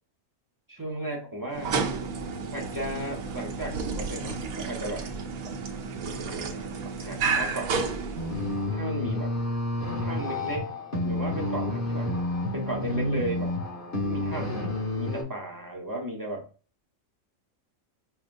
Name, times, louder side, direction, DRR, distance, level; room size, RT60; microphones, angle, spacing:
voice 1, 0.7-1.8 2.5-5.1 6.2-7.8 8.7-9.3 10.0-10.7 11.0-12.1 12.5-13.5 14.0-14.6 15.0-16.5, right 1 dB, 20° right, -2 dB, 0.6 m, -35 dB
sound 1, 1.5-8.7, right 4 dB, 85° right, 1.1 m, -31 dB
sound 2, 8.2-15.2, left 1 dB, 15° left, 1.0 m, -30 dB
5.6 x 2.2 x 2.5 m, 0.36 s
omnidirectional pair, 1.5 m